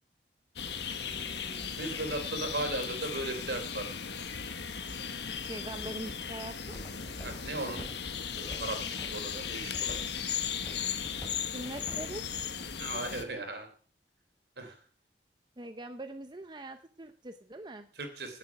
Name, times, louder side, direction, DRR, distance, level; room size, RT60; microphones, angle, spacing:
sound 1, 0.6-13.2, left 7 dB, 75° left, 1.3 m, -37 dB
voice 1, 1.0-1.8 5.5-6.6 11.5-12.6 14.6-14.7 15.6-17.9, right 1 dB, 25° right, 7 dB, 0.7 m, -43 dB
voice 2, 1.8-3.9 7.2-7.8 8.4-10.1 12.8-13.7 14.6-14.7 17.9-18.4, right 2 dB, 70° right, 6 dB, 3.3 m, -37 dB
Walk footsteps, 6.6-13.3, equal, 15° left, 6.5 m, -50 dB
17.0 x 7.7 x 6.0 m, 0.44 s
head